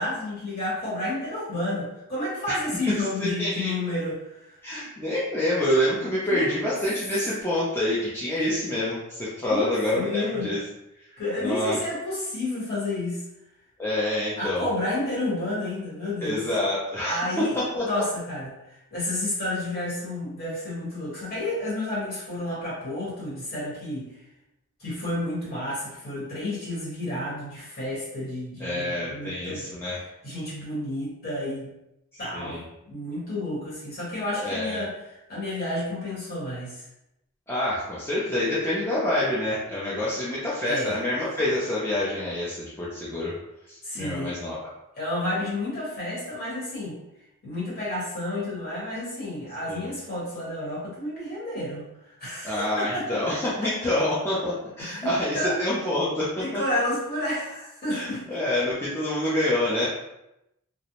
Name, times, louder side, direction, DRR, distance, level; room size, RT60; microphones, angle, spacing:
voice 1, 0.0-4.5 6.0-6.5 9.5-10.5 11.2-13.2 14.4-16.4 17.1-18.5 18.9-24.1 24.8-30.0 30.2-31.7 32.2-34.9 35.3-36.8 40.6-41.0 43.8-44.4 45.0-47.0 47.4-51.8 52.2-53.7 54.8-55.6 56.4-58.3, left 1 dB, 45° left, -7 dB, 1.1 m, -31 dB
voice 2, 3.2-3.7 4.6-10.6 11.4-11.8 13.8-14.7 16.2-17.9 28.6-30.0 32.3-32.6 34.4-34.8 37.5-43.3 43.7-44.6 49.7-49.8 52.4-56.3 57.9-59.9, left 1 dB, 10° left, -9 dB, 0.4 m, -27 dB
2.4 x 2.0 x 2.8 m, 0.86 s
head